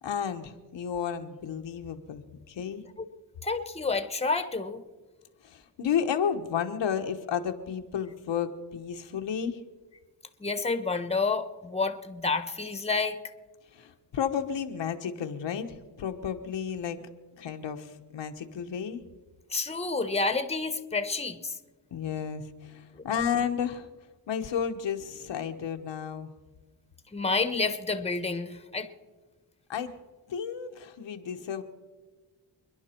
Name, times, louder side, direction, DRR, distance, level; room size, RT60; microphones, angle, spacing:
voice 1, 0.0-2.8 5.4-9.6 13.7-19.0 21.9-23.9 24.3-26.3 29.7-29.9 30.3-31.6, left 8 dB, 90° left, 5 dB, 1.2 m, -32 dB
voice 2, 3.4-4.8 10.4-13.2 19.5-21.6 27.1-28.9, left 3 dB, 15° left, 10 dB, 1.1 m, -29 dB
28.5 x 11.0 x 4.5 m, 1.3 s
wide cardioid pair, 120°, 43 cm